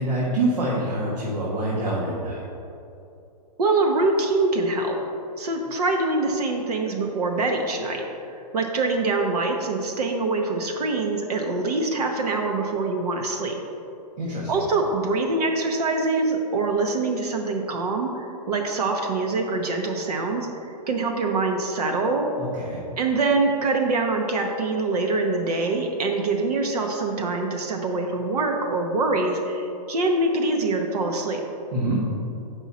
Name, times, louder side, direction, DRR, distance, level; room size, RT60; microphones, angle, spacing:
voice 1, 0.0-2.4 14.2-14.5 22.4-22.8 31.7-32.0, right 1 dB, 85° right, -5 dB, 1.5 m, -26 dB
voice 2, 3.6-5.0 5.4-8.0 8.5-13.6 14.5-22.3 23.0-31.4, right 3 dB, 70° right, 2 dB, 0.9 m, -24 dB
7.3 x 5.5 x 4.1 m, 2.8 s
hypercardioid pair, 165°, 21 cm